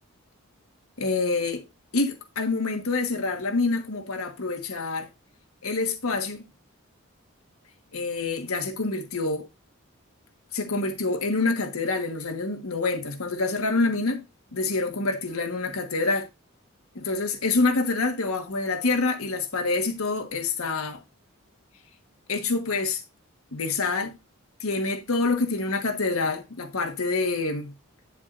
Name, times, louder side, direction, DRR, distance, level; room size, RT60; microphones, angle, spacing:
voice 1, 1.0-1.6 1.9-5.1 5.6-6.4 7.9-9.4 10.5-14.2 14.5-16.3 16.9-21.0 22.3-23.0 23.5-24.2 24.6-27.7, left 3 dB, 85° left, 1.4 m, -26 dB
9.3 x 7.2 x 2.5 m
head